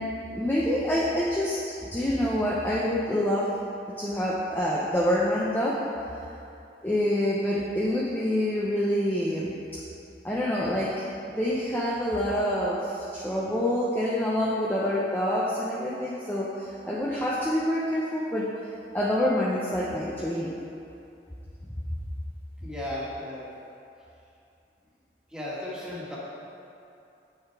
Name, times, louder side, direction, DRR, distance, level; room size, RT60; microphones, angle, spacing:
voice 1, 0.0-3.5 4.0-5.8 6.8-9.5 10.2-10.9 11.3-18.4 18.9-20.5 21.9-22.0, left 1 dB, 10° left, -7 dB, 0.7 m, -26 dB
voice 2, 22.6-23.5 25.3-26.2, left 1 dB, 5° right, -8 dB, 1.8 m, -35 dB
8.8 x 6.5 x 4.7 m, 2.7 s
head